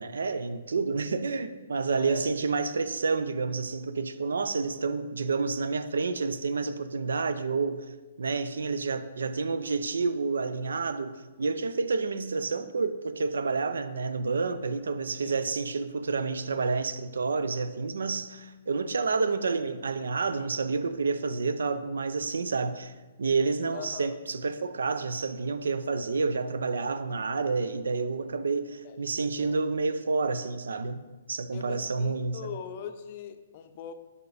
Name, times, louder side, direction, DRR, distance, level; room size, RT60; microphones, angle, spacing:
voice 1, 0.0-7.8 8.2-22.9 23.2-32.4, right 4 dB, 75° right, 0.4 m, -29 dB
voice 2, 1.9-2.3 15.2-15.7 23.7-24.1 28.8-29.6 31.5-33.9, left 8 dB, 45° left, 0.5 m, -42 dB
5.1 x 4.7 x 4.7 m
figure-of-eight pair, 130°, 0 cm